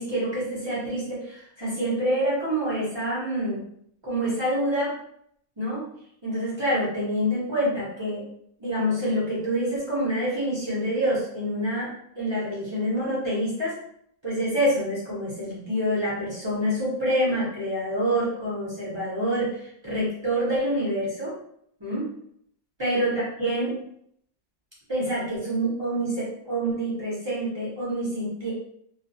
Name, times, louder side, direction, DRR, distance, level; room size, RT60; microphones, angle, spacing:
voice 1, 0.0-3.6 4.0-4.9 5.6-5.9 6.2-8.2 8.6-13.8 14.2-21.3 21.8-22.1 22.8-23.8 24.9-28.5, equal, 30° right, -8 dB, 0.5 m, -27 dB
2.4 x 2.2 x 2.6 m, 0.70 s
omnidirectional pair, 1.6 m